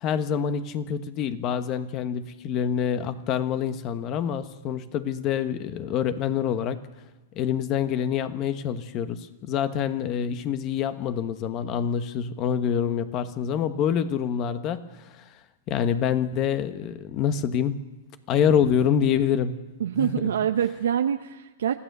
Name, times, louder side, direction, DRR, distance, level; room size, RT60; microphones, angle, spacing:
voice 1, 0.0-6.9 7.3-15.2 15.7-17.8 18.3-19.7 20.0-20.3, left 8 dB, 30° left, 11 dB, 1.3 m, -26 dB
voice 2, 19.8-21.8, right 9 dB, 85° right, 6 dB, 0.8 m, -25 dB
26.0 x 15.5 x 6.8 m, 1.1 s
hypercardioid pair, 145°, 0 cm